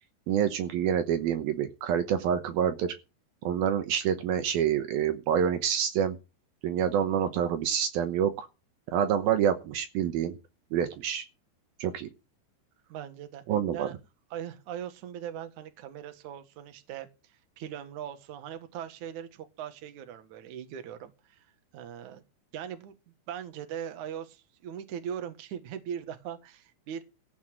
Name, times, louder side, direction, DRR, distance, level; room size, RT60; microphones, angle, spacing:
voice 1, 0.3-2.9 3.4-6.2 6.6-8.5 8.9-10.4 10.7-11.2 11.8-12.1 13.5-13.9, right 9 dB, 70° right, 2.6 m, -27 dB
voice 2, 12.9-13.4 13.7-14.0 14.3-17.1 17.6-21.4 21.7-22.2 22.5-23.0 23.3-27.0, right 9 dB, 55° right, 2.5 m, -40 dB
15.0 x 5.7 x 8.9 m
omnidirectional pair, 4.9 m